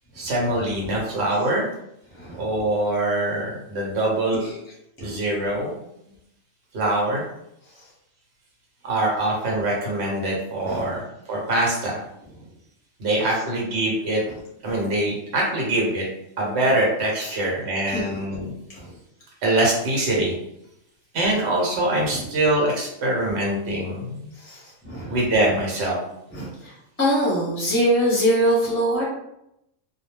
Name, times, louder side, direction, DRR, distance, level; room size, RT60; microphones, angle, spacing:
voice 1, 0.1-1.6 2.3-4.4 5.0-5.7 6.7-7.2 8.8-12.0 13.0-14.2 14.6-16.1 16.4-18.5 19.4-20.4 21.1-24.3 25.1-26.0, right 1 dB, 55° right, -2 dB, 1.0 m, -23 dB
voice 2, 2.1-2.5 4.3-4.5 5.0-5.1 10.6-10.8 17.9-18.2 18.7-18.8 22.1-22.2 24.4-25.1 26.3-26.7 27.0-29.0, equal, 10° left, -6 dB, 0.7 m, -23 dB
2.2 x 2.2 x 3.1 m, 0.81 s
omnidirectional pair, 1.4 m